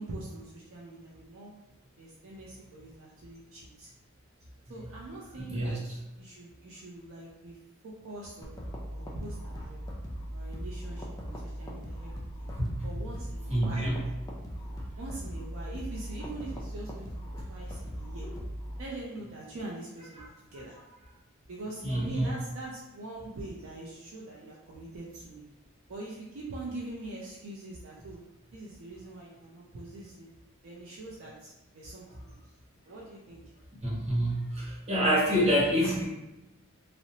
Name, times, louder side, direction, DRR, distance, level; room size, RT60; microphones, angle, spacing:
voice 1, 0.0-1.5 2.0-3.9 4.7-7.6 7.8-8.6 8.9-9.8 10.3-12.4 12.8-13.8 15.0-18.3 18.8-20.8 21.5-25.4 25.9-28.2 28.5-30.3 30.6-32.4 32.8-33.4, right 2 dB, 65° right, -4 dB, 0.4 m, -43 dB
voice 2, 5.3-5.8 12.6-13.0 13.5-14.0 20.2-20.3 21.8-22.3 33.8-36.0, equal, 30° right, -6 dB, 0.8 m, -27 dB
sound 1, 8.4-18.8, equal, 15° left, 0.3 m, -39 dB
2.7 x 2.0 x 2.7 m, 1.0 s
head